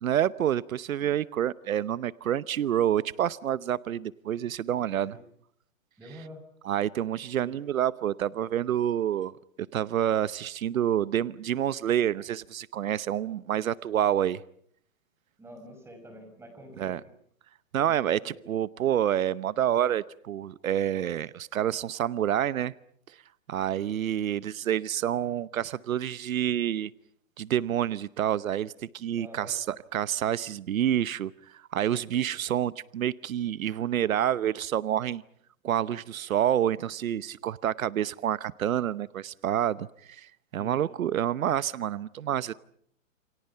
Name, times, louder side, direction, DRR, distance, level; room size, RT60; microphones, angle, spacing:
voice 1, 0.0-5.2 6.6-9.3 9.7-14.4 16.8-17.0 17.7-22.7 23.5-26.9 27.4-35.2 35.6-42.5, right 10 dB, 90° right, 1.0 m, -28 dB
voice 2, 6.0-6.4 7.3-7.6 15.4-17.1 17.8-18.4 29.2-29.6 40.6-40.7, equal, 5° right, 5.9 m, -47 dB
29.0 x 28.5 x 5.7 m
hypercardioid pair, 155°, 40 cm